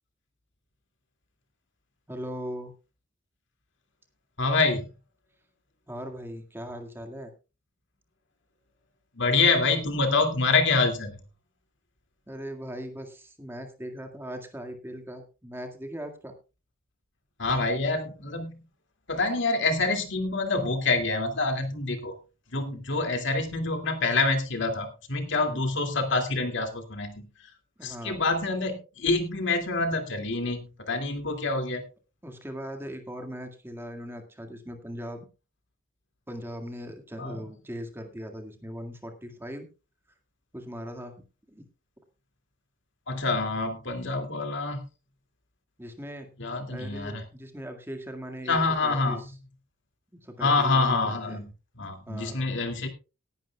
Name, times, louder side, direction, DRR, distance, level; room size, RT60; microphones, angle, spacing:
voice 1, 2.1-2.7 5.9-7.3 12.3-16.4 25.5-25.6 27.8-28.2 32.2-35.3 36.3-39.7 40.5-41.1 41.5-41.6 45.8-46.3 46.7-49.3 50.1-51.4 52.1-52.4, equal, 10° right, 4 dB, 1.9 m, -39 dB
voice 2, 4.4-4.9 9.2-11.2 17.4-18.6 19.1-22.1 22.5-27.3 27.8-31.8 37.2-37.4 43.1-44.8 46.4-47.2 48.5-49.2 50.4-51.5 51.8-52.9, left 3 dB, 60° left, 6 dB, 2.4 m, -26 dB
18.5 x 11.5 x 2.3 m, 0.30 s
head